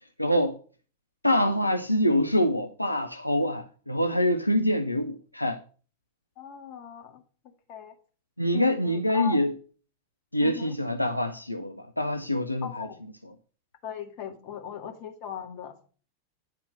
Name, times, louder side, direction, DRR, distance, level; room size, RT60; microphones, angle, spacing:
voice 1, 0.2-0.6 1.2-5.6 8.4-9.5 10.3-12.9, left 1 dB, 85° left, 0.6 m, -25 dB
voice 2, 6.4-7.2 7.7-7.9 8.5-9.4 10.4-10.8 12.6-13.0 13.8-15.7, left 8 dB, 40° left, 2.0 m, -38 dB
9.5 x 4.4 x 6.3 m
figure-of-eight pair, 90°, 0 cm